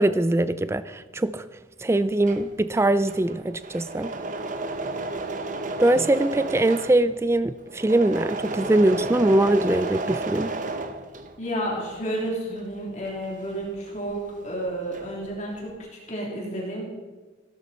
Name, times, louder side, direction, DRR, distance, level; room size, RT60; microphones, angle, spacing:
voice 1, 0.0-1.5 1.8-4.1 5.8-10.5, right 1 dB, 15° right, 14 dB, 0.3 m, -22 dB
Engine / Mechanisms, 2.0-11.6 12.0-14.3 14.6-15.3, right 2 dB, 40° right, 0.9 m, -33 dB
voice 2, 11.4-16.8, right 1 dB, 40° left, -2 dB, 3.1 m, -31 dB
16.5 x 13.0 x 4.3 m, 1.3 s
head